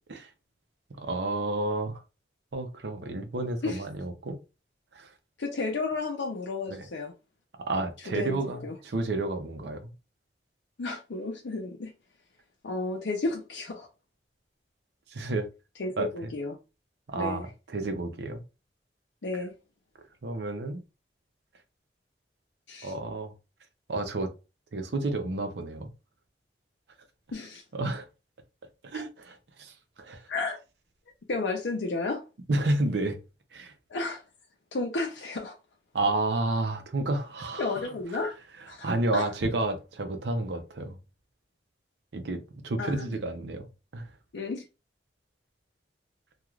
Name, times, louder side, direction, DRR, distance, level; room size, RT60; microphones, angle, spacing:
voice 1, 0.9-2.0 2.5-4.4 4.9-5.1 6.7-6.9 7.6-9.9 15.1-15.5 16.0-16.1 17.1-18.4 20.2-20.8 22.8-23.3 23.9-24.3 24.7-25.9 27.7-28.1 28.8-30.3 32.5-33.2 33.5-33.7 35.9-37.8 38.8-41.0 42.1-43.7 43.9-44.1, right 2 dB, 75° right, 0.6 m, -30 dB
voice 2, 5.4-7.1 8.1-8.7 10.8-11.9 12.6-13.9 15.8-16.6 17.1-17.4 19.2-19.5 22.7-22.9 27.3-27.6 28.9-29.0 30.3-30.6 31.3-32.2 33.9-34.2 34.7-35.6 37.6-38.3 38.7-39.3 42.8-43.0 44.3-44.6, left 3 dB, 85° left, 0.6 m, -32 dB
3.0 x 2.4 x 2.4 m
head